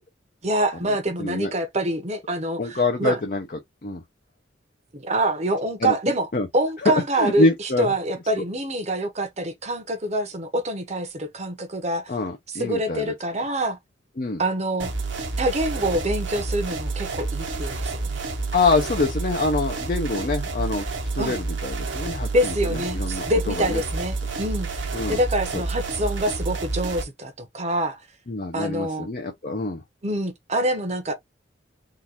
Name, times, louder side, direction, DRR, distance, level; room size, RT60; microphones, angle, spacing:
voice 1, 0.4-3.2 4.9-6.3 6.5-12.1 12.5-13.8 14.4-14.9 15.4-18.2 21.2-21.3 22.3-28.0 28.5-29.1 30.0-31.1, right 1 dB, 35° right, 0.8 m, -26 dB
voice 2, 1.2-1.5 2.6-3.4 3.8-4.0 5.8-5.9 6.3-6.5 6.8-7.9 12.1-13.1 14.2-14.4 18.5-20.9 21.1-23.8 24.9-25.2 25.5-25.6 28.3-29.8, left 3 dB, 45° left, 0.7 m, -25 dB
sound 1, 14.8-27.0, right 3 dB, 75° right, 1.0 m, -29 dB
3.8 x 2.5 x 2.8 m
head